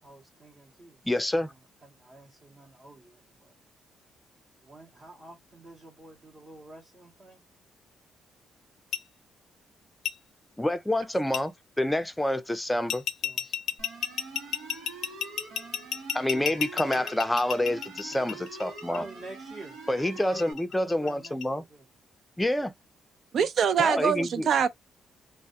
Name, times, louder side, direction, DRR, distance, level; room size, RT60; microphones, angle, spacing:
voice 1, 0.0-1.0 1.8-3.6 4.6-7.4 13.2-13.4 16.3-17.1 18.1-18.4 18.9-19.8 20.8-21.8, right 2 dB, 35° right, 0.8 m, -48 dB
voice 2, 1.1-1.5 10.6-13.0 16.1-19.0 19.9-21.6 22.4-22.7 23.8-24.5, left 1 dB, 10° left, 0.5 m, -27 dB
sound 1, 8.9-9.0 10.1-10.2 11.3-11.4 12.9-19.0 20.2-21.4, left 9 dB, 70° left, 0.4 m, -32 dB
sound 2, 13.8-20.5, right 3 dB, 85° right, 1.0 m, -45 dB
voice 3, 23.3-24.7, right 7 dB, 60° right, 0.5 m, -24 dB
2.2 x 2.1 x 2.7 m
cardioid pair, 90°, 0 cm